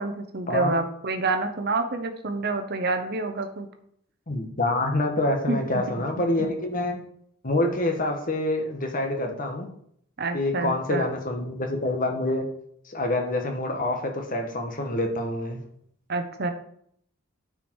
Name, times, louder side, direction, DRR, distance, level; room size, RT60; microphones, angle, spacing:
voice 1, 0.0-3.7 5.5-5.6 6.4-6.5 10.2-11.0 16.1-16.5, right 3 dB, 50° right, 6 dB, 0.9 m, -28 dB
voice 2, 4.3-7.0 7.4-9.7 10.3-12.4 12.8-15.6, left 1 dB, 40° left, 3 dB, 1.4 m, -26 dB
9.5 x 4.9 x 4.6 m, 0.67 s
head